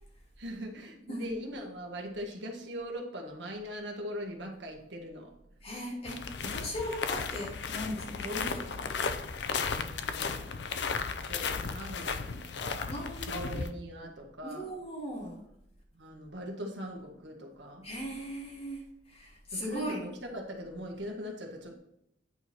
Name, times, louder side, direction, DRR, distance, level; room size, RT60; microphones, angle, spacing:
voice 1, 0.4-5.3 8.2-8.4 9.7-10.5 11.3-12.9 13.3-14.7 15.9-17.9 19.5-21.8, equal, 75° right, 2 dB, 1.6 m, -41 dB
voice 2, 5.6-8.9 12.9-13.6 14.4-15.4 17.8-20.1, equal, 35° left, -4 dB, 2.6 m, -38 dB
sound 1, 6.1-13.7, left 5 dB, 65° left, 0.5 m, -35 dB
8.9 x 4.8 x 4.4 m, 0.77 s
head